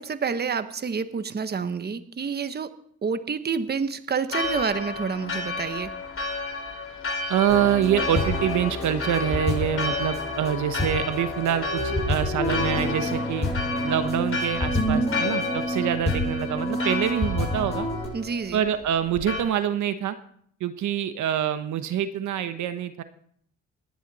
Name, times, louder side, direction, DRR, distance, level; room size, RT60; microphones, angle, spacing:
voice 1, 0.0-2.7 3.0-5.9 18.1-18.6, right 5 dB, 35° right, 11 dB, 1.2 m, -28 dB
Church bell, 4.3-19.4, left 3 dB, 45° left, 3.2 m, -32 dB
voice 2, 7.3-13.5 13.8-17.9 18.5-20.2 20.6-23.0, right 9 dB, 70° right, 10 dB, 1.1 m, -26 dB
sound 1, 7.5-18.1, left 1 dB, 20° left, 7.6 m, -28 dB
27.5 x 10.5 x 4.2 m, 0.65 s
cardioid pair, 90°, 30 cm